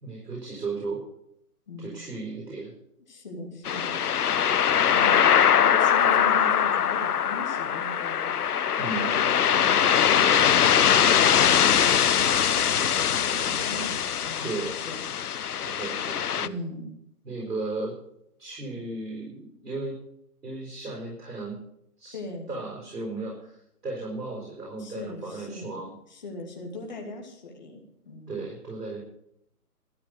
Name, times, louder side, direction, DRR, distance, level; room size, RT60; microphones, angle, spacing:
voice 1, 0.0-1.0 1.8-2.7 4.7-5.0 8.7-9.1 14.4-14.7 15.6-16.5 17.2-18.0 18.4-20.0 20.4-21.6 22.0-22.2 22.5-25.9 28.3-29.0, right 3 dB, 85° right, -2 dB, 5.3 m, -35 dB
voice 2, 3.1-4.0 4.9-5.2 5.6-8.3 8.9-15.0 16.4-16.8 22.1-22.6 24.8-28.4, left 2 dB, 30° left, 1 dB, 2.4 m, -39 dB
sound 1, 3.7-16.5, left 8 dB, 70° left, 0.7 m, -22 dB
13.5 x 8.3 x 8.0 m, 0.76 s
hypercardioid pair, 175°, 47 cm